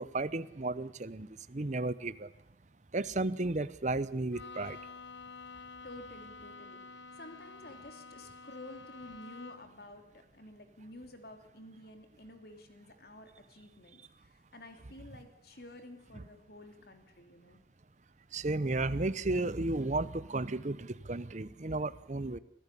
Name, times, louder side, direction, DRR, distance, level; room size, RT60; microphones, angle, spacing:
voice 1, 0.0-2.3 2.9-4.8 18.3-22.4, right 2 dB, 40° right, 15 dB, 0.8 m, -33 dB
Bowed string instrument, 4.3-9.8, left 4 dB, 90° left, 1.1 m, -49 dB
voice 2, 5.5-17.6, left 1 dB, 55° left, 6 dB, 3.1 m, -51 dB
25.0 x 15.0 x 9.9 m, 0.81 s
head